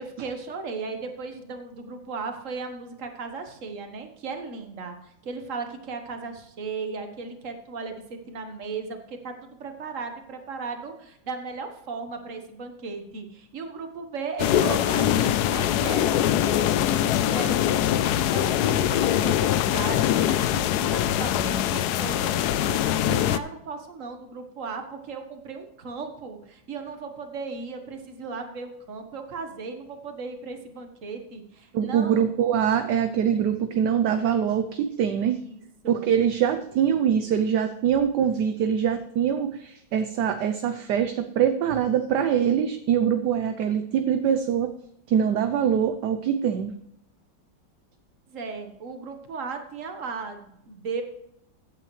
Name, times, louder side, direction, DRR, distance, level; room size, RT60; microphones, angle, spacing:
voice 1, 0.0-32.3 33.3-33.5 35.0-35.1 35.4-36.1 48.3-51.0, right 4 dB, 45° right, 6 dB, 1.6 m, -36 dB
sound 1, 14.4-23.4, left 11 dB, 75° left, 1.0 m, -23 dB
voice 2, 31.7-35.4 35.9-44.7 45.1-46.7, right 8 dB, 70° right, 9 dB, 1.2 m, -23 dB
15.5 x 8.7 x 3.2 m, 0.78 s
omnidirectional pair, 2.1 m